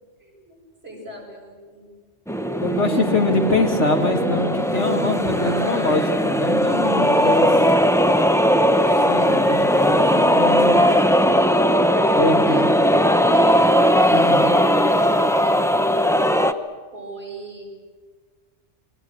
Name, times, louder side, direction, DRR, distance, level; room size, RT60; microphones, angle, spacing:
voice 1, 0.2-0.6 0.8-1.9 2.8-3.1 5.4-5.9 7.2-7.9 8.9-9.4 12.5-14.3 14.7-15.8 16.9-17.6, right 1 dB, 60° right, -1 dB, 7.7 m, -40 dB
sound 1, 2.3-16.5, equal, 5° left, 0.7 m, -18 dB
voice 2, 2.6-7.5 9.1-10.0 10.3-10.8 12.2-12.6 14.1-14.4, left 2 dB, 80° left, 3 dB, 2.7 m, -23 dB
28.5 x 22.0 x 7.9 m, 1.5 s
omnidirectional pair, 1.2 m